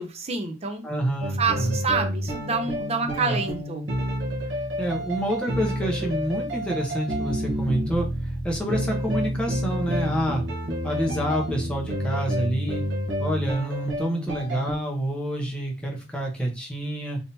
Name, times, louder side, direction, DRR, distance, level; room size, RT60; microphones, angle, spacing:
voice 1, 0.0-0.8 1.4-3.8, right 4 dB, 35° right, 5 dB, 0.6 m, -27 dB
voice 2, 0.8-1.8 3.1-3.4 4.5-10.4 10.8-12.8 13.2-17.2, right 1 dB, 5° left, -1 dB, 0.9 m, -28 dB
sound 1, 1.2-14.8, equal, 70° right, 1.0 m, -29 dB
3.5 x 2.8 x 2.7 m, 0.30 s
head